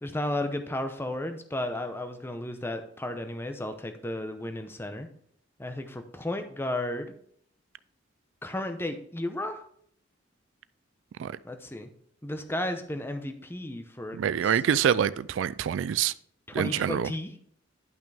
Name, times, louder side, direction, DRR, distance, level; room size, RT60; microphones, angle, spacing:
voice 1, 0.0-5.1 5.6-7.1 8.4-9.6 11.4-11.9 12.2-14.5 16.5-17.4, left 1 dB, 10° left, 0.8 m, -33 dB
voice 2, 14.1-16.1 16.5-17.1, right 8 dB, 75° right, 0.3 m, -26 dB
10.5 x 6.0 x 3.4 m
head